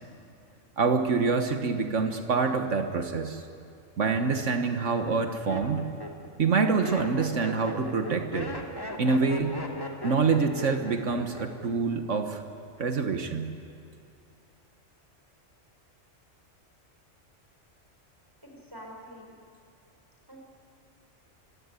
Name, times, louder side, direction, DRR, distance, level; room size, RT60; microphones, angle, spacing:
voice 1, 0.8-3.4 4.0-5.9 6.4-8.5 9.0-9.6 10.0-12.4 12.8-13.5, right 4 dB, 75° right, 6 dB, 1.6 m, -26 dB
Laughter, 4.4-4.5 5.1-11.7 12.0-12.5, equal, 20° left, 2.3 m, -38 dB
voice 2, 18.4-19.3 20.3-20.4, equal, 20° right, 0 dB, 5.3 m, -46 dB
25.5 x 16.5 x 9.7 m, 2.5 s
omnidirectional pair, 1.3 m